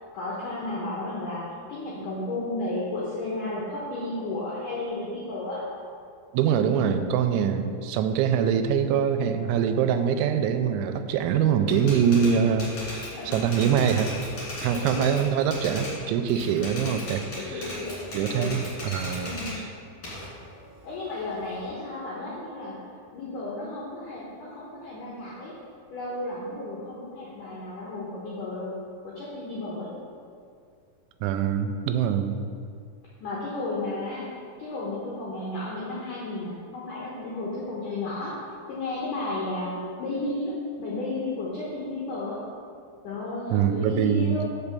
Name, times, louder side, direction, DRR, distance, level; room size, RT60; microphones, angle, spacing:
voice 1, 0.1-1.4 1.7-5.6 12.0-12.1 13.0-13.3 14.6-15.1 17.3-18.0 18.3-18.6 19.2-19.6 20.8-22.8 23.1-25.5 25.9-28.8 29.0-29.9 33.2-34.3 34.6-38.4 38.7-40.5 40.8-42.4 43.0-44.5, left 2 dB, 80° left, -6 dB, 1.9 m, -33 dB
voice 2, 6.3-14.1 14.6-17.7 18.1-19.4 31.2-32.4 43.5-44.4, right 8 dB, 90° right, 8 dB, 2.9 m, -24 dB
Typewriter, 11.7-16.0 16.3-19.6 20.0-21.7, left 1 dB, 40° left, 2.4 m, -37 dB
6.0 x 5.4 x 6.8 m, 2.3 s
omnidirectional pair, 5.2 m